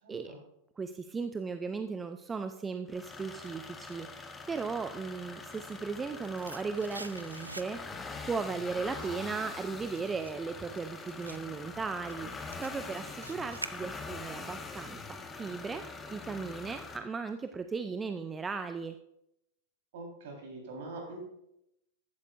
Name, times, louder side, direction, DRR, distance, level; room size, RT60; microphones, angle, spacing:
voice 1, 0.0-0.4 19.9-21.2, right 2 dB, 55° right, 0 dB, 4.0 m, -44 dB
voice 2, 0.8-12.3 12.6-18.9, right 4 dB, 15° right, 9 dB, 0.5 m, -37 dB
sound 1, 2.9-17.0, left 4 dB, 15° left, 1.2 m, -44 dB
sound 2, 5.9-8.1 8.4-14.3 14.6-14.7, right 2 dB, 85° right, 0.5 m, -47 dB
14.5 x 12.0 x 2.5 m, 0.82 s
figure-of-eight pair, 90°, 0 cm